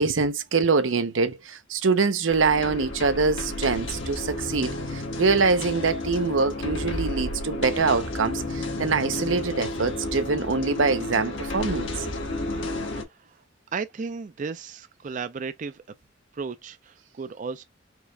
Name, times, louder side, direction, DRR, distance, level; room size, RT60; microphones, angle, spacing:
voice 1, 0.0-12.1, right 4 dB, 90° right, 0.7 m, -24 dB
sound 1, 2.3-13.0, left 2 dB, 75° left, 1.3 m, -32 dB
voice 2, 13.7-15.8 16.3-17.6, right 5 dB, 40° right, 0.4 m, -34 dB
4.8 x 2.3 x 3.2 m
head